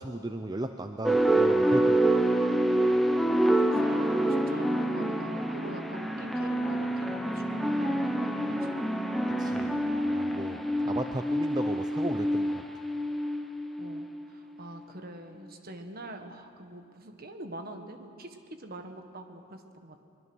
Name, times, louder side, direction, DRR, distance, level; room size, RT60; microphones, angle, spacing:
voice 1, 0.0-2.0 9.4-12.6, right 1 dB, 20° right, 7 dB, 0.5 m, -36 dB
sound 1, 1.0-14.4, right 1 dB, ahead, 0.9 m, -27 dB
voice 2, 3.4-8.8 13.8-14.1 14.6-20.0, right 1 dB, 45° right, 6 dB, 1.6 m, -44 dB
23.5 x 22.0 x 6.2 m, 2.4 s
head